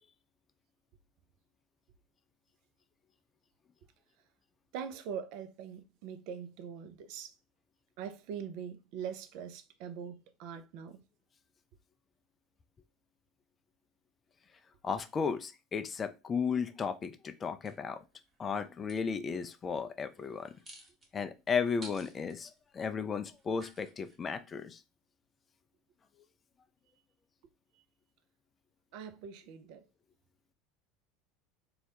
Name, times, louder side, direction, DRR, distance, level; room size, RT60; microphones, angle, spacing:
voice 1, 4.7-7.3 8.0-11.0 28.9-29.8, right 7 dB, 60° right, 0.3 m, -42 dB
voice 2, 14.8-18.0 18.4-20.5 21.1-24.8, left 6 dB, 30° left, 0.3 m, -34 dB
sound 1, 17.6-19.0 20.1-24.2, right 1 dB, 25° right, 1.0 m, -54 dB
2.3 x 2.0 x 2.8 m
figure-of-eight pair, 75°, 0 cm